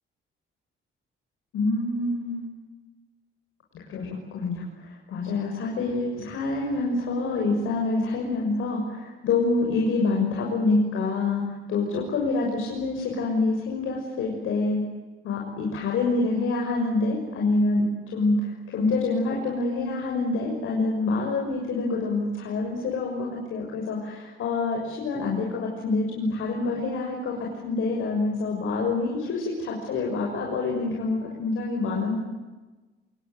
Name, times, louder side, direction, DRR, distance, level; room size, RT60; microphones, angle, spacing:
voice 1, 1.5-2.5 3.7-14.8 15.2-17.8 18.1-32.2, left 3 dB, 80° left, -1 dB, 6.6 m, -26 dB
28.0 x 21.5 x 9.4 m, 1.2 s
cardioid pair, 150°, 21 cm